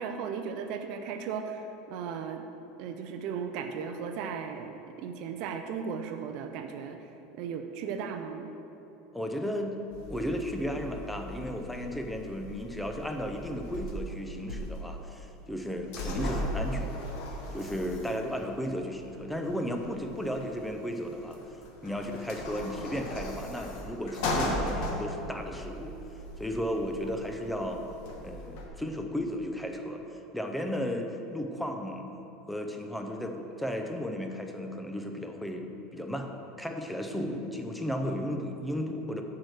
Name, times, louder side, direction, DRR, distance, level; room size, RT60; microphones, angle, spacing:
voice 1, 0.0-2.4 2.8-7.1 7.4-8.5, right 6 dB, 50° right, 6 dB, 0.5 m, -36 dB
voice 2, 9.1-9.8 10.1-16.9 17.5-21.4 21.8-25.9 26.4-27.8 28.2-30.0 30.3-32.1 32.5-36.3 36.6-39.2, equal, ahead, 4 dB, 0.5 m, -34 dB
sound 1, 9.9-28.7, left 1 dB, 60° left, 1.3 m, -38 dB
8.6 x 4.8 x 6.4 m, 3.0 s
supercardioid pair, 170°, 0 cm